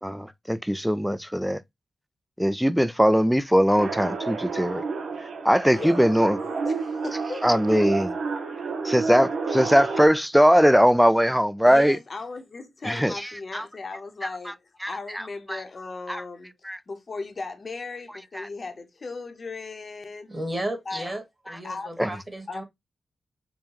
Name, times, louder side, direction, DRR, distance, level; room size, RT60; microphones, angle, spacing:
voice 1, 0.0-1.6 2.4-4.8 5.4-6.4 7.4-8.1 8.8-12.0 12.8-13.6 14.8-15.2 15.5-15.6 16.1-16.2 16.7-16.8 18.3-18.5 22.0-22.1, equal, ahead, 0.3 m, -20 dB
sound 1, 3.8-10.1, right 4 dB, 80° right, 0.8 m, -30 dB
voice 2, 5.7-6.2 6.6-7.4 11.6-16.5 16.9-20.3 20.9-21.2 21.6-22.2 22.5-22.6, left 3 dB, 45° left, 0.9 m, -37 dB
voice 3, 20.3-22.6, right 1 dB, 25° right, 1.4 m, -34 dB
5.4 x 2.2 x 2.9 m
cardioid pair, 90°, 0 cm